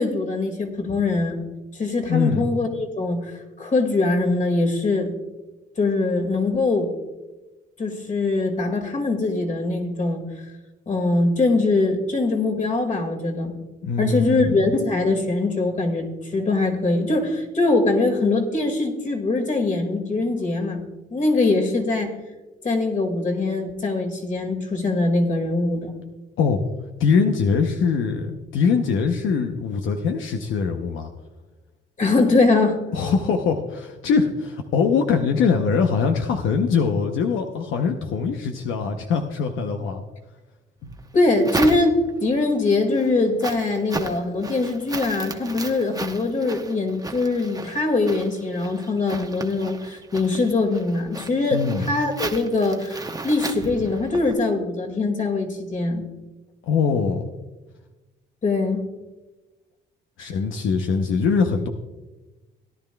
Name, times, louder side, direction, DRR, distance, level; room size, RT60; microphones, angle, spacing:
voice 1, 0.0-1.4 1.8-5.1 5.8-6.9 7.8-10.2 10.9-13.5 14.0-20.8 21.1-22.1 22.6-25.9 32.0-32.8 41.1-51.6 51.9-56.0 58.4-58.8, left 3 dB, 40° left, 3 dB, 2.1 m, -22 dB
voice 2, 2.1-2.5 13.8-14.6 26.4-26.6 27.0-31.1 32.9-40.0 40.8-40.9 51.5-51.9 56.6-57.3 60.2-61.7, left 5 dB, 80° left, 4 dB, 0.8 m, -22 dB
sound 1, 40.8-42.3 42.7-54.3, right 3 dB, 20° right, 1.0 m, -35 dB
17.5 x 10.5 x 2.3 m, 1.1 s
cardioid pair, 90°, 20 cm